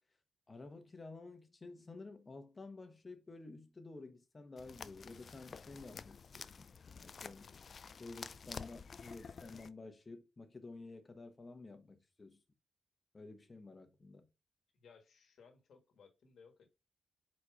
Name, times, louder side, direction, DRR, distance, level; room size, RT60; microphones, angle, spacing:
voice 1, 0.5-7.5 8.0-12.4 13.1-14.3, left 3 dB, 25° left, 1.1 m, -52 dB
sound 1, 4.6-9.7, left 5 dB, 45° left, 0.3 m, -50 dB
voice 2, 14.7-16.7, left 5 dB, 70° left, 1.6 m, -62 dB
4.9 x 4.2 x 4.8 m
cardioid pair, 115°, 0 cm